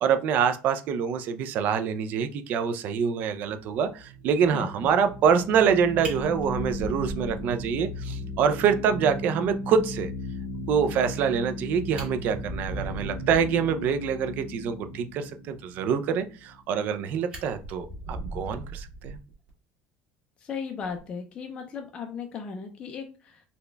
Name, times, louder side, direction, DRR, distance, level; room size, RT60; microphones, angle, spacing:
voice 1, 0.0-10.1 10.7-19.2, right 7 dB, 45° right, 9 dB, 0.4 m, -25 dB
sound 1, 3.6-16.8, left 1 dB, 65° right, 1.2 m, -37 dB
Fire, 6.0-7.9 8.3-8.4 8.8-8.9 9.2-9.3 11.5-11.6 11.8-13.6 16.4-16.9 17.3-19.5 20.8-21.0, right 1 dB, 25° right, 1.3 m, -38 dB
voice 2, 20.4-23.4, left 6 dB, 25° left, 3 dB, 0.4 m, -36 dB
4.0 x 2.2 x 3.3 m, 0.35 s
cardioid pair, 170°, 4 cm